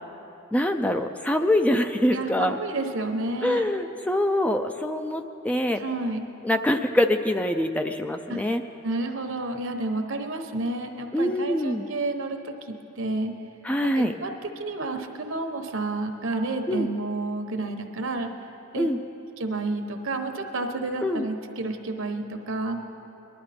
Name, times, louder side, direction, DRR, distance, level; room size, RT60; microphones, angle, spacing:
voice 1, 0.5-2.6 3.4-5.8 6.4-8.6 11.1-11.9 13.6-14.1 16.7-16.9 18.8-19.0 21.0-21.3, left 1 dB, 5° left, 7 dB, 0.3 m, -24 dB
voice 2, 2.1-3.6 5.7-6.3 8.3-8.4 8.8-13.3 13.8-18.3 18.7-18.9 19.4-22.8, right 2 dB, 70° right, 5 dB, 1.0 m, -30 dB
20.5 x 12.0 x 4.2 m, 2.9 s
head